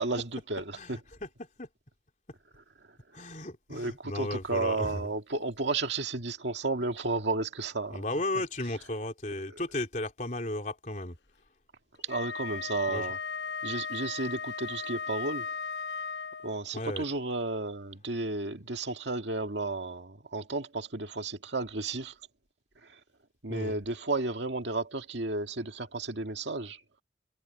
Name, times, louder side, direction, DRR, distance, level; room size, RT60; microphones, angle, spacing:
voice 1, 0.0-1.0 2.9-3.0 3.7-8.0 9.5-9.6 12.0-13.2 13.6-15.5 16.4-22.2 22.8-23.0 23.4-26.8, right 3 dB, 85° right, 2.1 m, -33 dB
voice 2, 0.7-1.7 3.1-5.1 7.9-11.2 12.9-13.1 16.7-17.1 23.5-23.8, left 1 dB, 45° left, 3.7 m, -35 dB
Wind instrument woodwind instrument, 12.0-16.7, left 5 dB, 80° left, 1.0 m, -36 dB
head